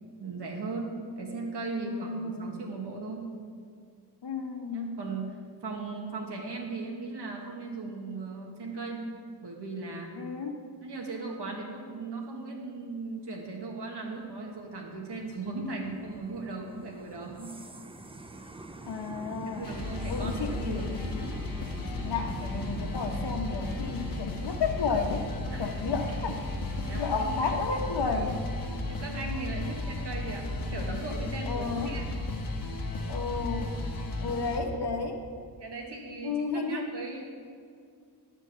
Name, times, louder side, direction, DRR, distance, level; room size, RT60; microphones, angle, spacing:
voice 1, 0.2-3.3 4.7-9.1 9.4-10.1 10.8-17.6 19.5-20.9 25.5-25.7 26.8-27.4 28.8-32.1 35.6-37.2, right 3 dB, 80° right, 0 dB, 1.7 m, -37 dB
voice 2, 1.8-2.5 4.2-5.0 10.2-10.6 18.9-19.7 20.1-21.4 21.9-25.3 25.6-26.4 27.0-28.5 31.5-31.9 33.1-33.7 34.2-35.2 36.2-36.9, left 4 dB, 75° left, 3 dB, 1.2 m, -32 dB
sound 1, 14.3-30.8, right 2 dB, 15° right, 0.5 m, -45 dB
sound 2, 19.6-34.6, left 2 dB, 55° left, 1.2 m, -34 dB
sound 3, 25.5-30.9, equal, 50° right, 2.5 m, -51 dB
11.5 x 4.4 x 7.9 m, 2.3 s
wide cardioid pair, 125°, 40 cm